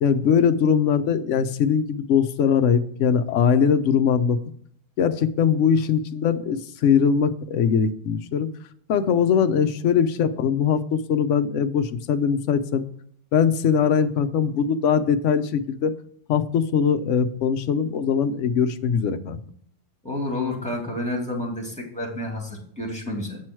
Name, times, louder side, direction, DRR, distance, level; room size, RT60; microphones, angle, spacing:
voice 1, 0.0-4.4 5.0-8.5 8.9-12.8 13.3-15.9 16.3-19.4, left 7 dB, 60° left, 9 dB, 1.0 m, -21 dB
voice 2, 20.0-23.4, left 1 dB, 5° left, 0 dB, 2.3 m, -29 dB
8.4 x 6.2 x 4.5 m, 0.63 s
omnidirectional pair, 1.5 m